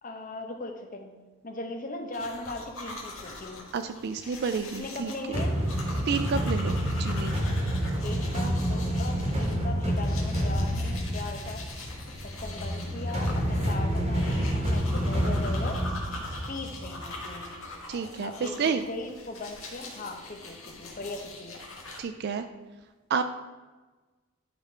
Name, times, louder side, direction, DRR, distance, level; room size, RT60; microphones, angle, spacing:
voice 1, 0.0-3.6 4.8-5.5 8.0-11.6 12.2-15.8 16.5-17.5 18.2-21.6, left 2 dB, 40° left, 4 dB, 0.9 m, -39 dB
sound 1, 2.1-22.0, left 2 dB, 75° left, 1.4 m, -43 dB
voice 2, 3.7-5.1 6.1-7.3 17.9-18.8 22.0-22.4 23.1-23.2, right 5 dB, 50° right, 9 dB, 0.3 m, -30 dB
sound 2, 5.3-17.2, equal, 30° right, 1.5 m, -28 dB
11.0 x 3.8 x 4.5 m, 1.3 s
head